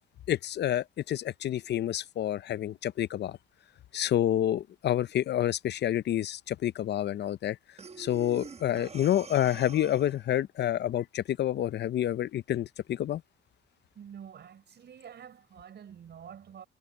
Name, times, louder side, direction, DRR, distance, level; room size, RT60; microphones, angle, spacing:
voice 1, 0.3-3.4 3.9-7.6 8.0-13.2, left 11 dB, 60° left, 0.6 m, -28 dB
Breathing, 7.8-10.3, right 4 dB, 30° right, 1.3 m, -46 dB
voice 2, 14.0-16.6, right 8 dB, 60° right, 5.4 m, -47 dB
cardioid pair, 90°, 20 cm